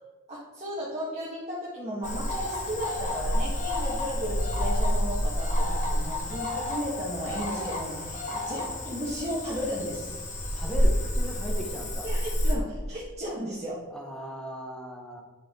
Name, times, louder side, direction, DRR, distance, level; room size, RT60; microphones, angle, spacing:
voice 1, 0.3-10.1 12.0-13.8, equal, 35° right, -8 dB, 1.8 m, -34 dB
Cricket / Frog, 2.0-12.6, equal, 35° left, 1.4 m, -29 dB
voice 2, 10.5-12.1 13.9-15.2, equal, 5° left, 0 dB, 1.2 m, -38 dB
10.5 x 6.0 x 3.9 m, 1.2 s
head